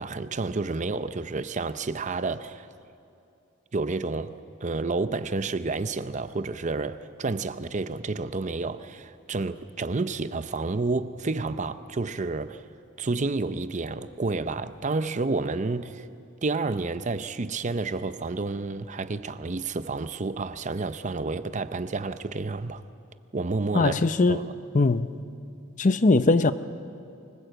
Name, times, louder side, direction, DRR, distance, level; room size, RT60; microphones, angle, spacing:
voice 1, 0.0-2.7 3.7-4.4 4.6-12.6 13.0-16.1 16.4-22.8 23.3-23.9 24.3-24.5, right 3 dB, 40° right, 0.6 m, -30 dB
voice 2, 23.7-24.4 24.7-25.1 25.8-26.5, left 3 dB, 40° left, 0.6 m, -20 dB
24.5 x 21.0 x 7.9 m
head